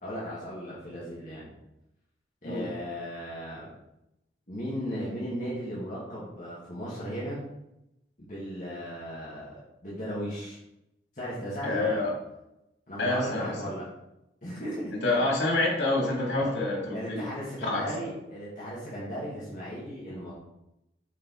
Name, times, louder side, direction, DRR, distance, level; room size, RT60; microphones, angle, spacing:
voice 1, 0.0-1.5 2.4-3.7 4.5-7.4 8.2-9.5 9.8-10.6 11.1-12.1 12.9-13.9 14.4-15.3 16.4-16.6 16.9-20.3, equal, 45° left, -8 dB, 2.0 m, -36 dB
voice 2, 11.6-12.1 13.0-13.5 15.0-17.3 17.6-17.8, left 2 dB, 90° left, -2 dB, 2.8 m, -27 dB
8.3 x 4.5 x 4.1 m, 0.88 s
head